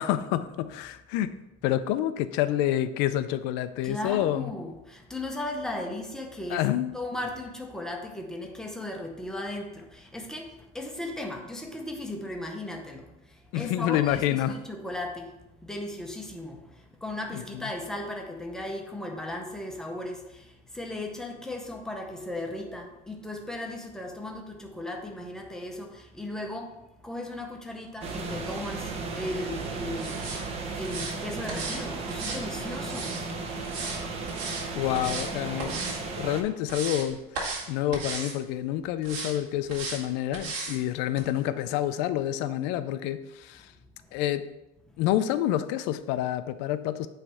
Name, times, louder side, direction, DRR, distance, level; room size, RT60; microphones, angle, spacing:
voice 1, 0.0-1.3 1.6-4.5 6.5-7.0 13.5-14.6 17.3-17.7 34.7-35.8 36.2-43.7 44.1-44.5 45.0-47.1, left 12 dB, 65° left, 12 dB, 0.5 m, -28 dB
voice 2, 3.8-6.7 6.9-30.4 30.7-34.7 43.6-44.1 44.9-45.0, left 1 dB, 5° left, 2 dB, 0.7 m, -37 dB
sound 1, 28.0-36.4, right 3 dB, 30° right, 0.8 m, -35 dB
sound 2, 30.0-30.4 30.8-31.1 31.5-31.8 32.1-33.2 33.6-34.0 34.3-34.6 34.9-35.3 35.6-36.0 36.4-37.1 37.3-37.6 37.9-38.3 39.0-39.3 39.7-40.0 40.3-40.8 41.2-41.3, right 4 dB, 75° right, 2.0 m, -35 dB
8.7 x 3.3 x 4.7 m, 0.95 s
cardioid pair, 165°, 19 cm